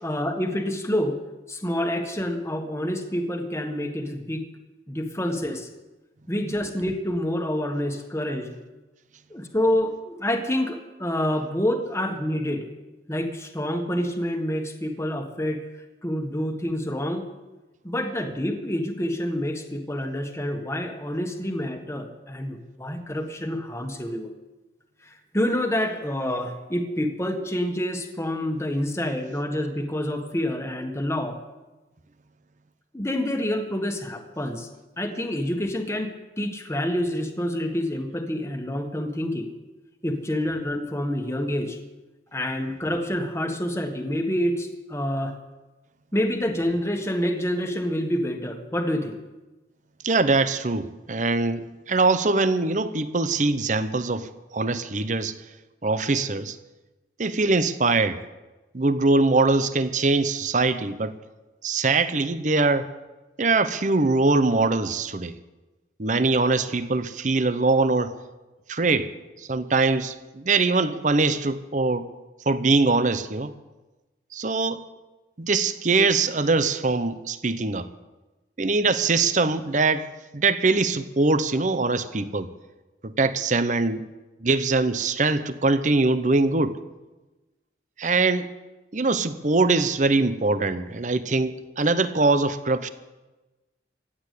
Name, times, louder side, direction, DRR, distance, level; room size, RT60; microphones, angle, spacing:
voice 1, 0.0-1.2 1.5-4.4 4.9-5.7 6.3-8.6 9.3-12.7 13.1-15.6 16.0-17.2 17.8-24.3 25.0-31.4 32.9-34.7 35.0-39.5 40.0-41.8 42.3-45.3 46.1-49.2, left 1 dB, 15° left, 5 dB, 1.5 m, -27 dB
voice 2, 50.0-55.4 55.8-56.6 57.2-58.2 58.7-61.2 61.6-62.9 63.4-65.4 66.0-68.1 68.7-69.1 69.5-72.1 72.5-73.5 74.3-74.8 75.4-77.9 78.6-82.5 83.0-84.0 84.4-86.8 88.0-88.5 88.9-92.9, right 3 dB, 45° right, 12 dB, 0.8 m, -22 dB
16.0 x 9.9 x 8.4 m, 1.1 s
head